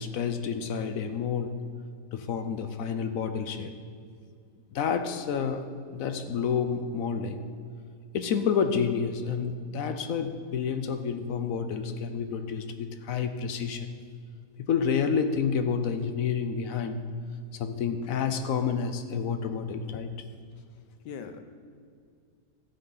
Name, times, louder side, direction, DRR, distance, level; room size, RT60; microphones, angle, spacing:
voice 1, 0.0-1.5 2.1-3.7 4.7-5.7 5.9-7.5 8.1-13.9 14.7-17.0 17.6-20.1, left 6 dB, 65° left, 9 dB, 0.9 m, -29 dB
voice 2, 16.6-17.1 18.0-18.2 20.7-21.4, left 6 dB, 90° left, 8 dB, 1.4 m, -45 dB
13.5 x 9.4 x 4.0 m, 2.2 s
omnidirectional pair, 1.8 m